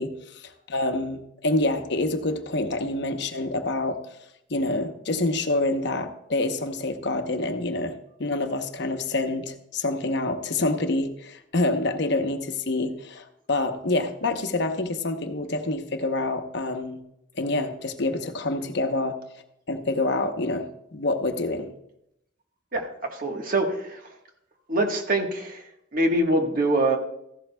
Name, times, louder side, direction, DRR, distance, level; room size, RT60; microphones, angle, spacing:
voice 1, 0.0-4.0 4.5-17.0 17.4-19.2 19.7-21.7, left 2 dB, 60° left, 6 dB, 0.9 m, -27 dB
voice 2, 22.7-24.0 24.7-27.0, right 1 dB, 45° right, 2 dB, 1.3 m, -24 dB
14.5 x 11.5 x 2.2 m, 0.80 s
head